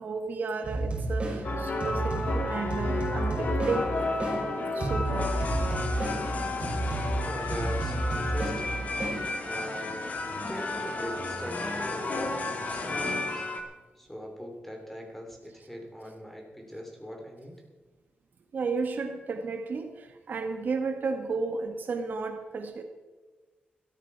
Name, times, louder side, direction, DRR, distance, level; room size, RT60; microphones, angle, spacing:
voice 1, 0.0-3.9 4.2-4.3 4.7-5.5 18.5-22.8, right 4 dB, 60° right, 5 dB, 1.6 m, -33 dB
sound 1, 0.6-9.8, right 2 dB, 40° right, 5.7 m, -32 dB
sound 2, 1.4-13.6, left 2 dB, 50° left, 2.1 m, -32 dB
voice 2, 7.2-8.8 9.4-10.1 10.5-13.5 13.9-17.6, equal, 5° left, 2 dB, 3.1 m, -41 dB
16.5 x 13.5 x 4.7 m, 1.2 s
wide cardioid pair, 150°, 3 cm